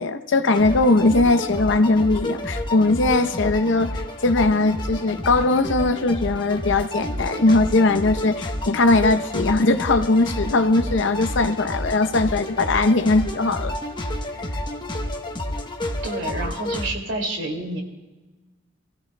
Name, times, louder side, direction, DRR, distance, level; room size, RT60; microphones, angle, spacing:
voice 1, 0.0-13.7 14.4-14.6, left 2 dB, 65° left, 10 dB, 0.7 m, -20 dB
sound 1, 0.5-16.9, left 1 dB, 25° left, 1.0 m, -30 dB
voice 2, 16.0-17.8, right 2 dB, 70° right, 2 dB, 2.4 m, -28 dB
25.5 x 15.5 x 2.2 m, 1.2 s
head